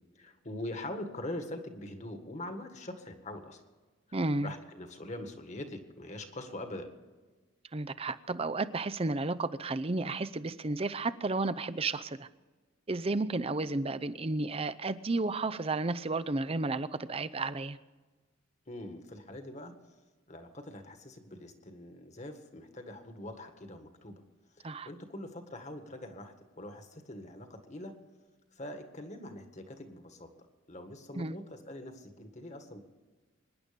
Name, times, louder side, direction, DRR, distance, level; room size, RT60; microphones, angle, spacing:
voice 1, 0.2-3.6 4.1-6.9 18.7-19.7 20.3-24.2 24.6-27.9 28.5-30.3 30.7-32.8, left 1 dB, 35° left, 6 dB, 1.8 m, -43 dB
voice 2, 4.1-4.5 7.7-12.3 12.9-17.8 24.6-24.9 31.1-31.4, right 3 dB, 30° right, 13 dB, 0.6 m, -32 dB
25.0 x 11.0 x 5.2 m, 1.3 s
head